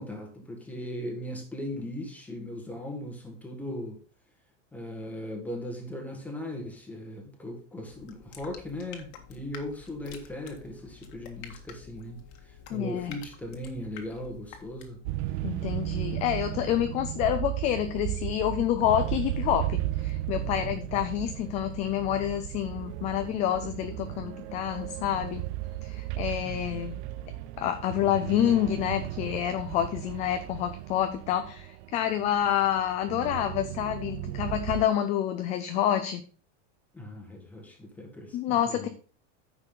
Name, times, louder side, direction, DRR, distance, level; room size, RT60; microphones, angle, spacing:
voice 1, 0.0-4.0 4.7-12.2 12.4-15.0 16.5-16.9 20.3-21.0 26.4-27.2 36.9-38.9, left 1 dB, 5° left, 2 dB, 1.7 m, -38 dB
sound 1, 7.8-15.1, left 7 dB, 50° left, 1.8 m, -49 dB
voice 2, 12.7-13.2 15.4-25.4 25.8-27.0 27.6-36.2 38.3-38.9, left 11 dB, 20° left, 8 dB, 0.3 m, -28 dB
sound 2, 15.0-34.9, right 15 dB, 60° right, 0.6 m, -35 dB
9.9 x 6.7 x 3.9 m, 0.41 s
supercardioid pair, 165°, 37 cm